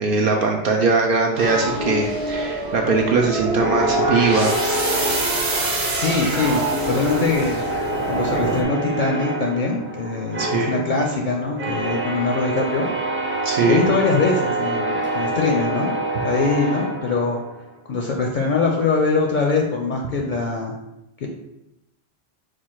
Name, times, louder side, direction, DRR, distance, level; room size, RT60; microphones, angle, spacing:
voice 1, 0.0-4.6 10.4-10.8 13.4-13.8, right 4 dB, 65° right, 1 dB, 0.7 m, -21 dB
sound 1, 1.3-8.6, right 2 dB, 80° right, 1.1 m, -25 dB
sound 2, 3.6-6.0 6.4-17.6, right 1 dB, 20° right, 0.3 m, -26 dB
voice 2, 6.0-7.6 8.1-12.9 13.6-15.9 16.2-17.4 17.9-20.8 21.2-21.3, left 3 dB, 60° left, 1 dB, 0.6 m, -22 dB
4.3 x 2.4 x 4.5 m, 0.89 s
omnidirectional pair, 1.0 m